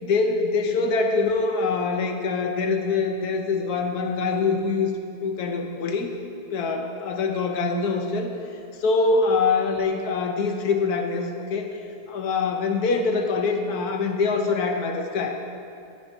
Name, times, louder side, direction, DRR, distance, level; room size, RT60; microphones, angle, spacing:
voice 1, 0.0-4.9 5.2-6.1 6.5-8.3 8.8-11.7 12.1-15.3, left 4 dB, 75° left, 3 dB, 1.2 m, -24 dB
11.0 x 7.0 x 2.6 m, 2.5 s
omnidirectional pair, 1.7 m